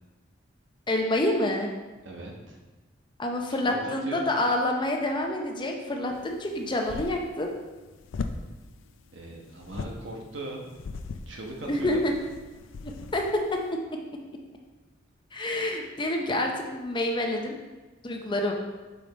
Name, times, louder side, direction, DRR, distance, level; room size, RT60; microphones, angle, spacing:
voice 1, 0.9-1.7 3.2-7.5 11.7-12.1 12.8-13.6 15.3-17.5 18.0-18.5, left 1 dB, 25° left, 2 dB, 0.6 m, -27 dB
voice 2, 2.0-2.6 3.5-4.2 9.1-10.7 11.3-12.1, right 1 dB, 80° right, 0 dB, 1.1 m, -39 dB
sound 1, 6.1-13.7, left 4 dB, 85° left, 0.4 m, -40 dB
5.2 x 5.0 x 3.9 m, 1.2 s
head